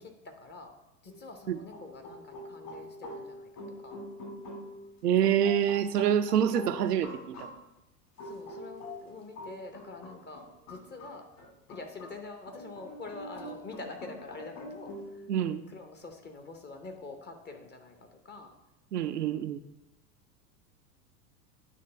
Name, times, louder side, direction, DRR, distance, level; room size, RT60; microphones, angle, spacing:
voice 1, 0.2-0.7 1.0-3.5 3.8-4.0 8.2-11.2 11.7-15.2 15.7-18.5, left 3 dB, 20° left, 5 dB, 0.9 m, -45 dB
sound 1, 1.1-1.3 1.7-7.5 8.2-12.2 12.4-15.1, left 1 dB, 50° left, 2.8 m, -44 dB
voice 2, 5.0-7.5 15.3-15.6 18.9-19.6, right 9 dB, 75° right, 10 dB, 0.7 m, -26 dB
9.3 x 3.2 x 5.5 m, 0.92 s
figure-of-eight pair, 90°, 48 cm